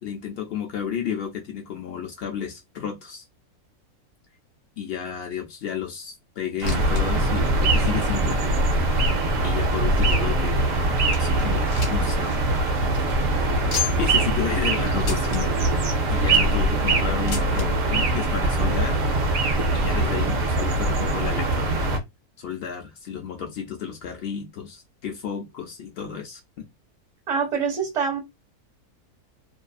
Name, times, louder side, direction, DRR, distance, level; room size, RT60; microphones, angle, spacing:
voice 1, 0.0-3.2 4.8-8.6 9.4-10.7 11.2-12.4 13.7-15.7 16.1-19.0 19.7-22.0 22.4-26.6, left 8 dB, 85° left, 0.5 m, -32 dB
sound 1, 6.4-7.0 7.3-7.4 8.1-8.2 8.9-10.4 10.8-10.9 11.1-12.2 12.5-12.6 12.8-13.0 13.7-14.2 15.0-15.4 16.0-16.5 17.3-17.7 18.6-18.7 18.9-19.0 19.8-19.9, left 8 dB, 55° left, 1.1 m, -34 dB
sound 2, 6.6-22.0, right 2 dB, 65° right, 1.0 m, -22 dB
voice 2, 27.3-28.2, right 6 dB, 30° right, 1.3 m, -25 dB
2.6 x 2.4 x 2.3 m
omnidirectional pair, 1.6 m